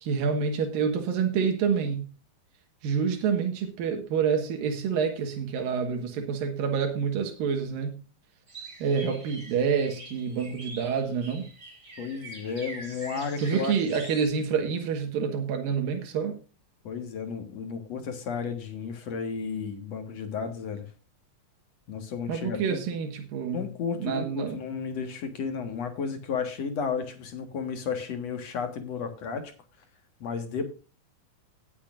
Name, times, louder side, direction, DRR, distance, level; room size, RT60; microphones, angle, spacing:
voice 1, 0.0-2.0 2.8-8.0 8.8-11.5 13.4-16.4 22.3-23.7 24.0-24.6, right 6 dB, 90° right, 3.2 m, -27 dB
sound 1, 8.5-14.3, right 2 dB, 30° right, 4.7 m, -44 dB
voice 2, 12.0-13.7 16.8-20.9 21.9-22.8 23.5-29.5 30.2-30.6, left 6 dB, 55° left, 2.4 m, -33 dB
17.5 x 8.5 x 2.5 m
omnidirectional pair, 3.9 m